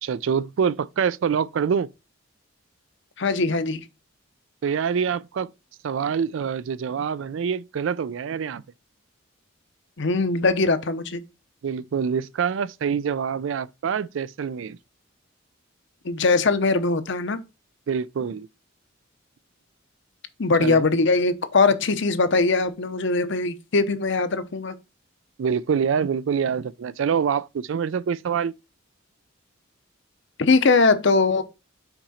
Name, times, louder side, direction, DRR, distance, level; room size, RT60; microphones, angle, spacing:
voice 1, 0.0-1.9 4.6-5.5 5.8-8.6 11.6-14.8 17.9-18.5 20.6-20.8 25.4-28.5, right 7 dB, 70° right, 0.4 m, -25 dB
voice 2, 3.2-3.8 10.0-11.2 16.0-17.4 20.4-24.7 30.4-31.4, left 3 dB, 60° left, 0.8 m, -21 dB
5.9 x 4.9 x 4.1 m
head